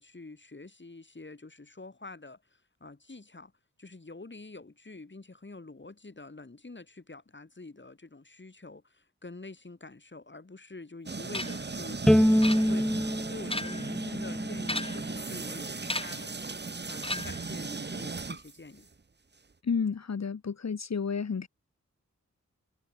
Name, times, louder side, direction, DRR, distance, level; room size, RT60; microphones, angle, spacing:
voice 1, 0.0-3.5 3.8-12.0 12.3-18.9, left 3 dB, 40° left, 6.7 m, -47 dB
sound 1, 11.1-18.9, right 4 dB, 35° right, 1.2 m, -37 dB
sound 2, 11.3-11.7 12.4-13.0 13.4-13.9 14.6-15.1 15.9-16.3 17.0-17.5, left 2 dB, 20° left, 2.2 m, -36 dB
Bowed string instrument, 12.1-15.3, equal, ahead, 0.8 m, -26 dB
voice 2, 19.6-21.5, left 6 dB, 65° left, 1.4 m, -31 dB
wide cardioid pair, 80°, 29 cm